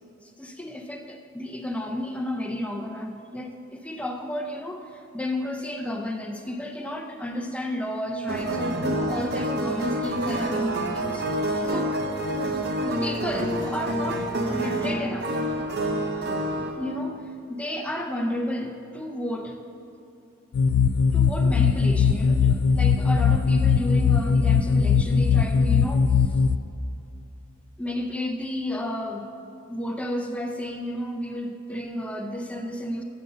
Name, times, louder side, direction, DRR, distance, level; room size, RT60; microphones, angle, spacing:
voice 1, 0.2-11.3 11.6-11.9 12.8-15.3 16.8-19.6 21.1-26.4 27.8-29.3 29.7-33.0, left 1 dB, 5° left, 4 dB, 0.5 m, -32 dB
sound 1, 8.3-16.7, right 1 dB, 50° right, 0.7 m, -27 dB
sound 2, 20.5-26.6, left 6 dB, 80° left, 0.3 m, -20 dB
7.8 x 6.6 x 6.5 m, 2.8 s
head